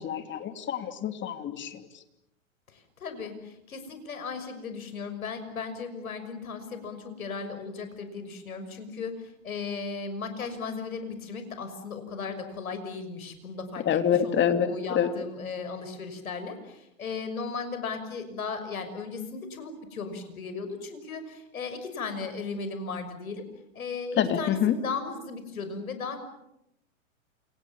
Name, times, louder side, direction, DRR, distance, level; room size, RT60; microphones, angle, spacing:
voice 1, 0.0-1.9 13.8-15.1 24.2-24.7, left 9 dB, 25° left, 8 dB, 2.9 m, -26 dB
voice 2, 2.7-13.8 14.2-23.5 23.7-26.2, left 4 dB, 80° left, 9 dB, 6.3 m, -36 dB
29.0 x 27.5 x 7.3 m, 0.85 s
hypercardioid pair, 110°, 41 cm